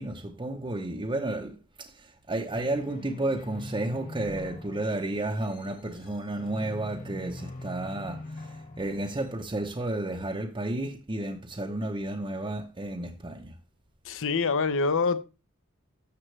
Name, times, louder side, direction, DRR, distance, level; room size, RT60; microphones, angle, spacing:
voice 1, 0.0-13.5, right 2 dB, 20° right, 0.8 m, -32 dB
sound 1, 2.5-9.3, left 2 dB, 40° left, 2.1 m, -43 dB
voice 2, 14.0-15.2, left 4 dB, 65° left, 0.9 m, -25 dB
12.5 x 7.5 x 3.3 m
head